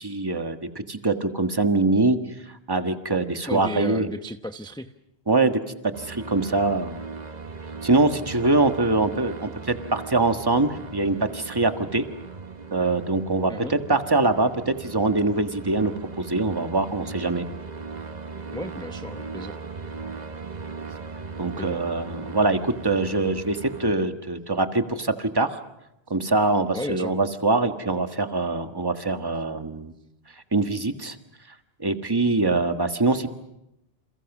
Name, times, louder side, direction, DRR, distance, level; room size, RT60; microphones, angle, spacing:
voice 1, 0.0-2.2 2.7-4.1 5.3-7.0 7.8-12.0 12.7-17.5 21.4-25.6 26.1-29.9 30.5-31.1 31.8-33.3, right 2 dB, 20° right, 7 dB, 1.6 m, -23 dB
voice 2, 3.5-4.9 13.5-13.7 18.5-19.6 21.6-21.8 26.7-27.1, left 1 dB, 5° left, 8 dB, 0.8 m, -34 dB
sound 1, 5.9-24.0, right 4 dB, 40° right, 1.3 m, -38 dB
29.0 x 28.0 x 6.1 m, 0.87 s
omnidirectional pair, 1.1 m